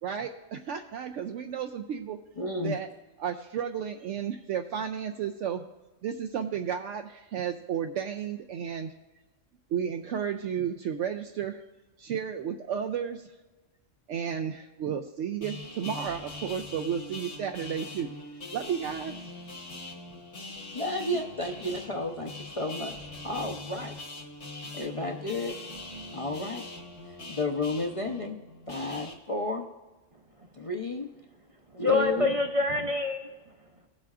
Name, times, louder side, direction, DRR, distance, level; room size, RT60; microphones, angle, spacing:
voice 1, 0.0-2.2 2.6-2.9 3.2-5.6 6.0-8.9 9.7-11.6 12.0-13.3 14.1-18.1 18.5-19.1, right 8 dB, 75° right, 4 dB, 0.9 m, -33 dB
voice 2, 2.4-2.7 20.7-22.9 23.2-23.9 24.7-25.5 26.1-26.6 27.3-28.4 28.7-29.7 30.6-31.1 31.8-32.3, left 2 dB, 35° left, 3 dB, 0.6 m, -32 dB
sound 1, 15.4-29.1, left 2 dB, 65° left, 1.7 m, -42 dB
voice 3, 30.1-30.5 31.8-33.6, left 2 dB, 40° right, 4 dB, 0.5 m, -27 dB
17.0 x 7.5 x 2.4 m, 1.2 s
omnidirectional pair, 1.3 m